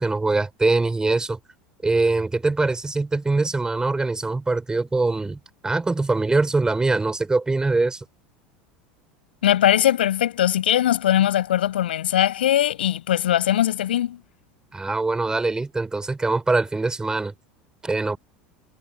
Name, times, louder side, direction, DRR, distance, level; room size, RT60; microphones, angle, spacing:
voice 1, 0.0-1.4 1.8-8.0 14.7-17.3 17.8-18.2, right 3 dB, 15° right, 4.2 m, -23 dB
voice 2, 9.4-14.2, left 11 dB, 75° left, 6.1 m, -20 dB
hypercardioid pair, 80°, 5 cm